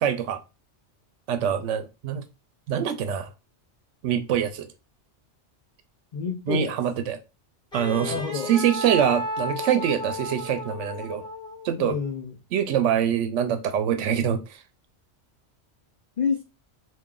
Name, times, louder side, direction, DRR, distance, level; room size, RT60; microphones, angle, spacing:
voice 1, 0.0-0.4 1.3-2.2 2.7-3.3 4.0-4.7 6.5-7.2 7.7-11.2 11.6-12.0 12.5-14.4, right 9 dB, 85° right, 0.9 m, -24 dB
voice 2, 6.1-6.7 8.0-8.5 11.8-12.3 16.2-16.4, left 5 dB, 50° left, 0.5 m, -28 dB
Wind instrument woodwind instrument, 7.7-11.8, left 1 dB, 5° left, 1.0 m, -33 dB
3.1 x 2.5 x 3.7 m
omnidirectional pair, 1.2 m